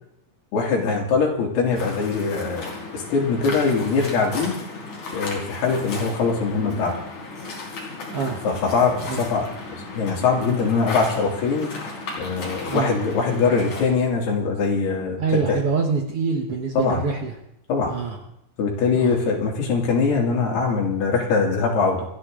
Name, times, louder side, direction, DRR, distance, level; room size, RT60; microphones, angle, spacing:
voice 1, 0.5-4.5 5.1-6.9 8.4-9.5 9.9-11.7 12.2-15.6 16.7-17.0 17.7-17.9 18.6-22.1, left 4 dB, 75° left, -1 dB, 4.7 m, -22 dB
Waves surf, 1.8-13.8, left 3 dB, 50° left, 4.9 m, -35 dB
voice 2, 8.1-8.5 9.1-9.3 12.6-13.0 15.2-17.3 17.9-18.2 18.9-19.2, right 5 dB, 80° right, 2 dB, 1.3 m, -25 dB
28.0 x 11.0 x 3.8 m, 0.78 s
omnidirectional pair, 4.7 m